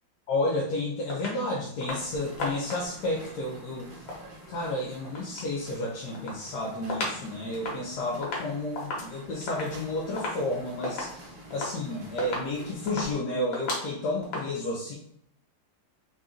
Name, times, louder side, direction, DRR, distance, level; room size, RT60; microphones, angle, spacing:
voice 1, 0.3-3.9 4.5-14.9, left 2 dB, 70° left, -3 dB, 1.2 m, -31 dB
sound 1, 1.1-1.4 1.8-2.1 2.4-3.0 3.9-5.5 5.9-7.2 7.5-14.4, left 2 dB, 85° left, 1.8 m, -36 dB
sound 2, 1.9-13.1, right 1 dB, 60° right, 1.5 m, -48 dB
3.9 x 2.3 x 3.7 m, 0.70 s
omnidirectional pair, 2.0 m